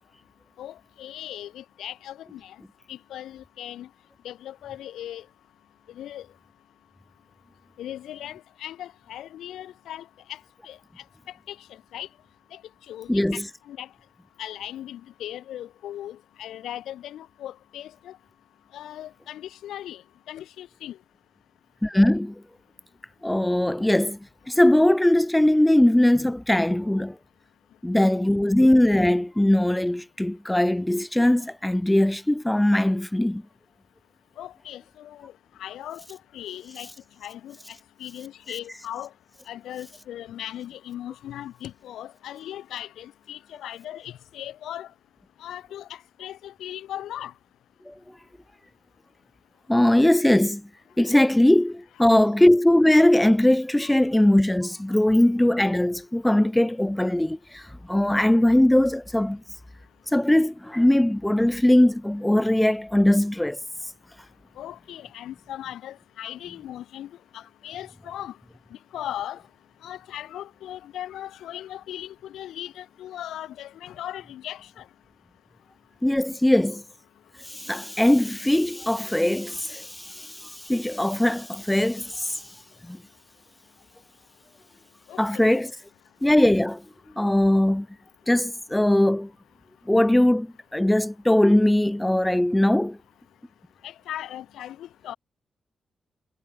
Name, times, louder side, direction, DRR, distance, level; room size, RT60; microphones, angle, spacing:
voice 1, 0.6-2.6 2.9-3.9 4.2-5.3 5.9-6.3 7.8-10.8 11.3-12.1 12.5-12.6 12.9-13.4 13.7-13.9 14.4-18.2 18.7-20.0 20.3-21.0 34.4-35.3 35.6-36.9 37.2-39.1 39.5-44.9 45.4-47.3 52.1-52.2 53.8-53.9 64.6-68.4 68.7-69.4 69.8-74.9 85.1-85.6 93.8-95.2, left 12 dB, 85° left, 1.8 m, -38 dB
voice 2, 13.1-13.5 21.8-22.4 23.2-24.2 24.5-27.2 27.8-33.4 47.9-48.0 49.7-50.7 51.0-59.4 60.1-63.6 76.0-76.8 77.4-82.4 82.9-83.0 85.2-85.7 86.2-86.8 87.2-87.9 88.3-89.3 89.9-93.0, left 1 dB, 10° left, 0.5 m, -20 dB
supercardioid pair, 50°, 0 cm